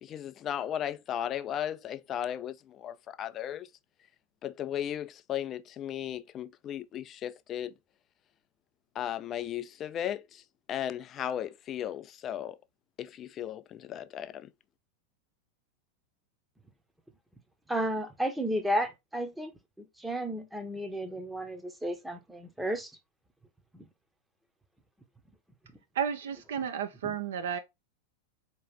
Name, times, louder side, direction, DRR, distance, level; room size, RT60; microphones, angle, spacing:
voice 1, 0.0-3.7 4.4-7.7 8.9-10.4 10.7-12.6 13.0-14.5, left 10 dB, 30° left, 0.4 m, -36 dB
voice 2, 17.7-19.5 19.8-22.9 23.7-23.8 27.0-27.1, equal, 5° right, 0.8 m, -33 dB
voice 3, 25.9-27.6, right 8 dB, 60° right, 0.5 m, -32 dB
4.6 x 3.0 x 3.2 m
figure-of-eight pair, 90°, 0 cm